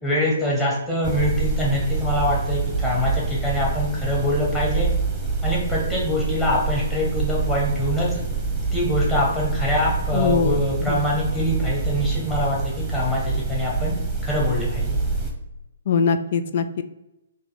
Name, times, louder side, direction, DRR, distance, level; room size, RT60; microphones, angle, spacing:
voice 1, 0.0-4.9 5.4-8.2 8.7-13.9 14.2-15.0, left 1 dB, 10° left, -5 dB, 1.7 m, -24 dB
sound 1, 1.0-15.3, right 4 dB, 10° right, 1.1 m, -26 dB
voice 2, 10.1-11.0 15.9-16.8, left 6 dB, 50° left, 10 dB, 0.3 m, -22 dB
4.0 x 3.1 x 4.1 m, 0.94 s
figure-of-eight pair, 130°, 0 cm